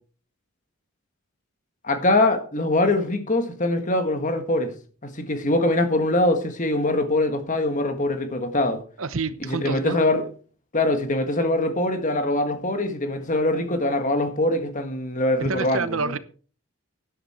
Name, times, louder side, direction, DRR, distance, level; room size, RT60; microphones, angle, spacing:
voice 1, 1.8-4.7 5.0-8.8 9.4-10.3 10.7-16.1, left 2 dB, 35° left, 1.6 m, -23 dB
voice 2, 9.0-10.0 15.4-16.2, right 4 dB, 70° right, 0.9 m, -28 dB
11.5 x 11.0 x 4.4 m
head